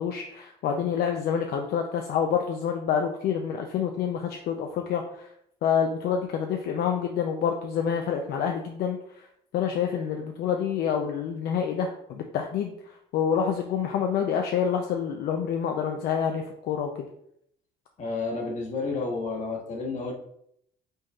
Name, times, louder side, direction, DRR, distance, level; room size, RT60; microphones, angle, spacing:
voice 1, 0.0-5.3 5.6-9.3 9.5-16.9, left 7 dB, 70° left, 3 dB, 0.5 m, -27 dB
voice 2, 18.0-20.1, left 3 dB, 45° left, -1 dB, 1.2 m, -31 dB
5.3 x 3.7 x 2.3 m, 0.72 s
cardioid pair, 110°, 17 cm